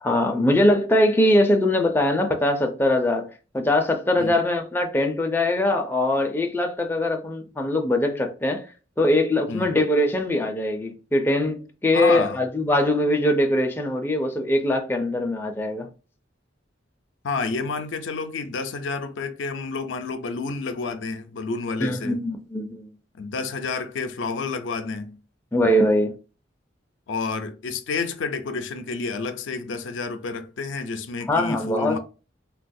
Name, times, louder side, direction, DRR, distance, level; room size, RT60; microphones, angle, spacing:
voice 1, 0.0-3.3 3.5-8.6 9.0-15.9 21.8-22.9 25.5-26.1 31.3-32.0, left 1 dB, 10° left, 0.4 m, -22 dB
voice 2, 11.9-12.4 17.2-22.2 23.1-25.2 27.1-32.0, left 4 dB, 80° left, 0.4 m, -29 dB
3.9 x 2.3 x 2.6 m
head